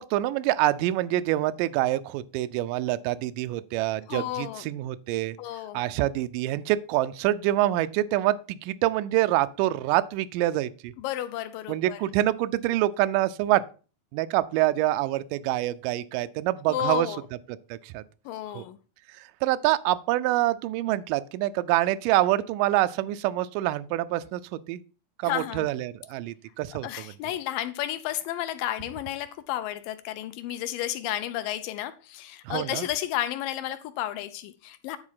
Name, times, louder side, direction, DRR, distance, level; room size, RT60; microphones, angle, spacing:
voice 1, 0.0-5.4 5.7-10.9 11.7-13.6 14.1-17.1 17.7-18.0 18.5-18.6 19.4-24.4 24.7-24.8 25.2-26.9 32.5-32.9, right 15 dB, 80° right, 2.0 m, -26 dB
voice 2, 4.1-4.7 5.4-5.8 11.0-12.0 16.7-17.2 18.3-18.8 25.2-25.7 26.8-35.0, left 12 dB, 80° left, 2.2 m, -32 dB
9.8 x 4.1 x 5.6 m
omnidirectional pair, 4.2 m